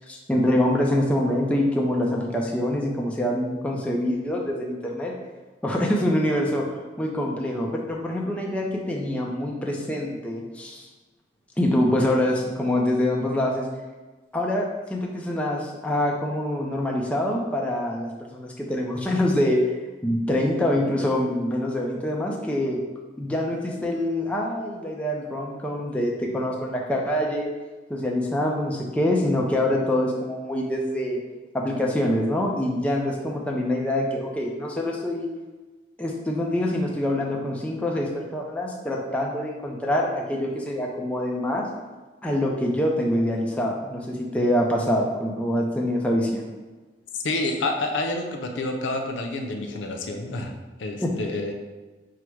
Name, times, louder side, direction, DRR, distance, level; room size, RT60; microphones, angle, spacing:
voice 1, 0.1-5.2 5.6-6.7 7.0-10.9 11.6-13.7 14.3-19.6 20.0-22.8 23.2-27.5 27.9-31.2 31.5-35.3 36.0-41.7 42.2-46.5 51.0-51.1, left 1 dB, 5° left, -1 dB, 0.4 m, -25 dB
voice 2, 47.2-50.5 50.8-51.5, left 2 dB, 90° left, 3 dB, 0.5 m, -28 dB
4.7 x 2.1 x 4.5 m, 1.2 s
head